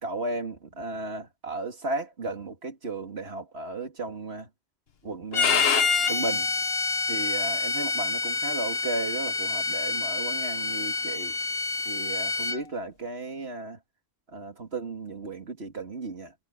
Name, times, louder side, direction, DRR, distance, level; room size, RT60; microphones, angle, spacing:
voice 1, 0.0-4.5 5.0-5.7 6.1-6.5 7.1-11.3 11.9-13.8 14.3-16.3, right 3 dB, 65° right, 2.7 m, -34 dB
Bowed string instrument, 5.3-12.6, left 4 dB, 60° left, 1.4 m, -27 dB
omnidirectional pair, 1.1 m